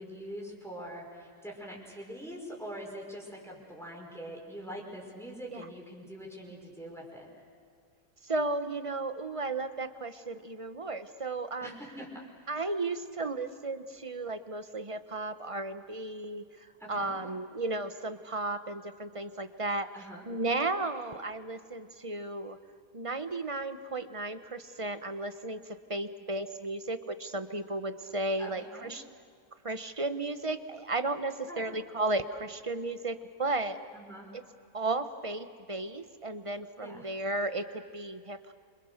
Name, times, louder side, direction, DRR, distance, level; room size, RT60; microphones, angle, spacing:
voice 1, 0.0-7.3 11.6-12.1 12.3-12.5 16.8-17.2 19.9-20.3 28.4-28.9 31.5-31.7 33.9-34.3 36.8-37.1, equal, ahead, -2 dB, 5.5 m, -44 dB
voice 2, 8.2-11.7 12.5-19.9 20.3-22.6 22.9-29.0 29.6-33.8 34.3-34.4 34.7-38.5, right 2 dB, 25° right, 10 dB, 1.0 m, -34 dB
27.5 x 26.0 x 6.6 m, 2.2 s
omnidirectional pair, 1.5 m